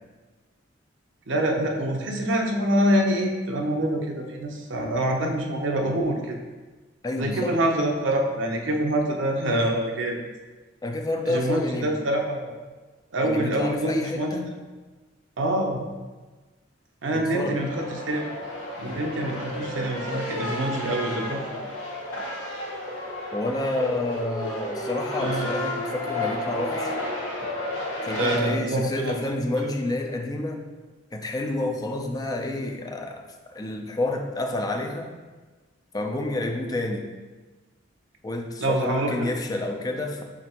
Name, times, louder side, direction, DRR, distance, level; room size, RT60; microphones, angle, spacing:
voice 1, 1.3-6.4 7.1-10.2 11.3-12.6 13.1-14.3 15.4-15.8 17.0-18.3 18.8-21.6 25.2-25.5 28.1-29.2 29.6-29.7 38.6-39.3, right 1 dB, 70° right, 1 dB, 0.7 m, -25 dB
voice 2, 7.0-7.5 10.8-11.9 13.2-14.5 17.1-17.7 23.3-26.9 28.0-30.6 31.1-33.2 33.5-35.1 35.9-37.1 38.2-40.2, left 2 dB, 20° left, 2 dB, 0.4 m, -29 dB
sound 1, 17.6-28.4, left 1 dB, 90° left, 1.0 m, -32 dB
5.0 x 3.5 x 2.9 m, 1.3 s
head